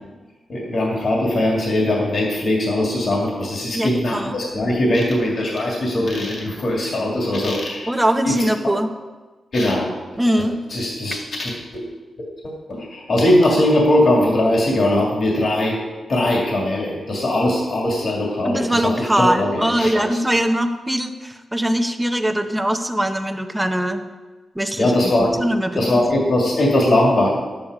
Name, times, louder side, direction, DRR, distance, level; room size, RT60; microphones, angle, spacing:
voice 1, 0.5-7.9 8.2-8.4 9.5-9.9 10.7-11.8 12.4-15.8 16.1-20.2 24.8-25.4 25.7-27.3, left 1 dB, 50° left, -2 dB, 2.3 m, -20 dB
voice 2, 3.7-4.4 7.9-8.9 10.2-10.6 18.4-24.0 24.6-24.9 25.2-26.0, right 1 dB, 10° right, 6 dB, 0.7 m, -21 dB
11.5 x 8.8 x 4.9 m, 1.3 s
wide cardioid pair, 145°, 0 cm